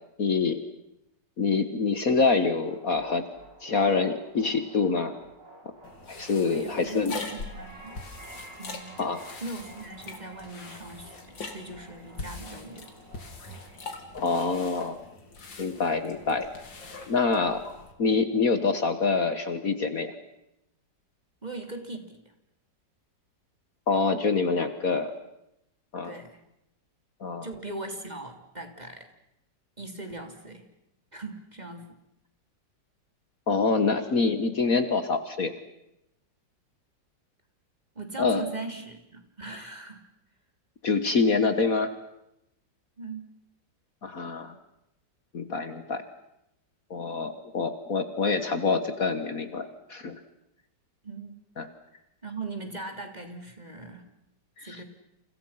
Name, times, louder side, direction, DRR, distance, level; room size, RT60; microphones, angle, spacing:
voice 1, 0.2-0.6 1.4-3.3 3.6-5.2 6.1-7.1 9.0-9.3 14.1-15.0 15.6-16.5 17.1-17.6 18.0-20.1 23.9-25.1 25.9-26.2 27.2-27.5 33.5-35.5 38.2-38.4 40.8-41.9 44.0-44.5 45.3-46.0 46.9-50.2 51.6-51.7 54.6-54.8, left 4 dB, 50° left, 9 dB, 1.9 m, -26 dB
sound 1, 2.6-14.8, right 2 dB, 65° right, 5.4 m, -51 dB
sound 2, 5.8-17.9, left 3 dB, 85° left, 3.6 m, -43 dB
voice 2, 6.4-8.0 8.6-9.0 9.4-12.9 21.4-22.2 26.0-26.4 27.4-29.1 29.8-30.7 31.1-31.9 37.9-40.0 43.0-43.2 51.0-51.4 52.2-54.1 54.6-54.8, right 3 dB, 20° right, 5 dB, 3.2 m, -39 dB
30.0 x 29.5 x 5.8 m, 0.85 s
omnidirectional pair, 2.0 m